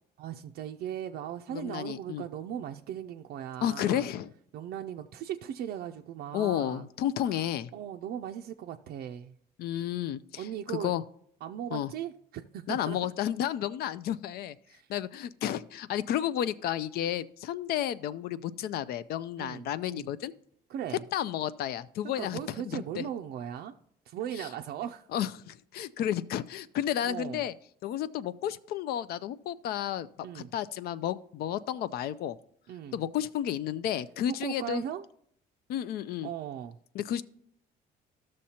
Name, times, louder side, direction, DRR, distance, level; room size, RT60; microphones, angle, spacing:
voice 1, 0.2-4.1 4.5-6.8 7.2-7.4 7.7-9.3 10.4-10.9 11.4-13.0 14.7-14.9 19.4-20.1 20.7-21.0 22.2-23.7 24.1-25.1 27.0-27.4 30.2-30.5 32.7-33.0 34.4-35.0 36.2-36.8, right 10 dB, 65° right, 5 dB, 0.4 m, -38 dB
voice 2, 1.5-2.2 3.6-4.3 6.3-7.7 9.6-11.0 11.7-11.9 12.7-14.6 14.9-20.3 21.1-22.4 22.6-23.1 24.4-24.5 25.1-27.5 27.8-30.1 30.3-32.4 32.9-34.8 35.7-36.3 36.9-37.2, left 11 dB, 65° left, 16 dB, 0.4 m, -32 dB
13.5 x 6.3 x 2.8 m, 0.68 s
cardioid pair, 110°, 17 cm